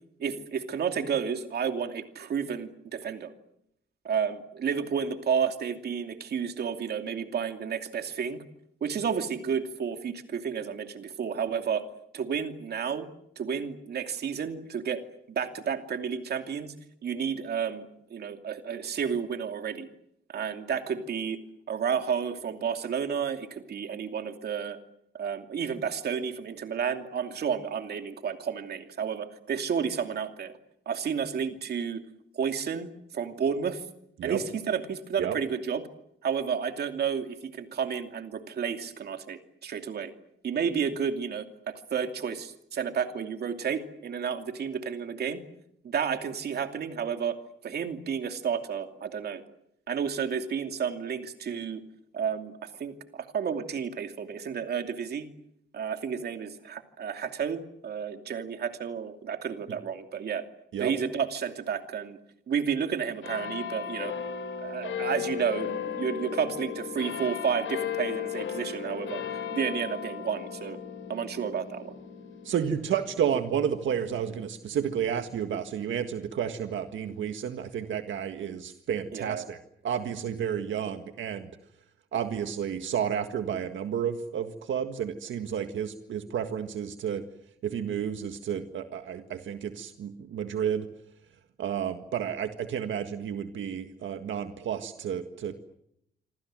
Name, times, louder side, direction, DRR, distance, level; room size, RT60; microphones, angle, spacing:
voice 1, 0.2-3.3 4.0-8.4 8.8-11.8 12.1-13.1 13.4-15.0 15.3-16.7 17.0-19.9 20.3-21.4 21.7-24.8 25.1-30.5 30.9-32.0 32.3-33.8 34.2-35.8 36.2-40.1 40.4-45.4 45.8-47.4 47.6-49.4 49.9-51.8 52.1-55.3 55.7-60.4 60.8-62.2 62.5-64.1 64.6-69.2 69.5-70.8 71.1-71.9 79.1-79.5, right 7 dB, 55° right, 6 dB, 2.7 m, -31 dB
sound 1, 63.2-76.1 76.8-76.9, left 8 dB, 90° left, 5.7 m, -36 dB
voice 2, 72.4-79.6 79.8-81.5 82.1-87.2 87.6-90.9 91.6-95.5, right 8 dB, 85° right, 7 dB, 1.7 m, -31 dB
27.5 x 25.5 x 7.7 m, 0.77 s
wide cardioid pair, 180°, 19 cm